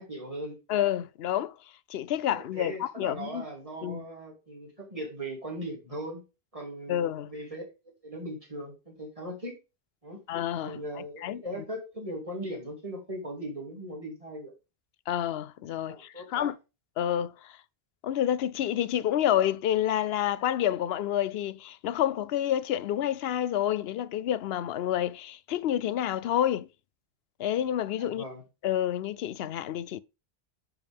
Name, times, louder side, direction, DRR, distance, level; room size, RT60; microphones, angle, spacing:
voice 1, 0.0-0.6 2.3-6.2 6.5-6.9 7.2-7.6 8.0-9.5 10.0-10.2 10.6-14.5 15.8-16.5 28.0-28.4, right 1 dB, 35° right, 2.7 m, -39 dB
voice 2, 0.7-1.5 1.9-3.4 3.8-4.0 6.9-7.3 10.3-10.8 11.2-11.4 15.1-16.5 17.0-17.6 18.0-26.7 27.4-28.2 28.6-30.0, left 11 dB, 75° left, 0.8 m, -29 dB
10.5 x 4.9 x 3.5 m
omnidirectional pair, 1.1 m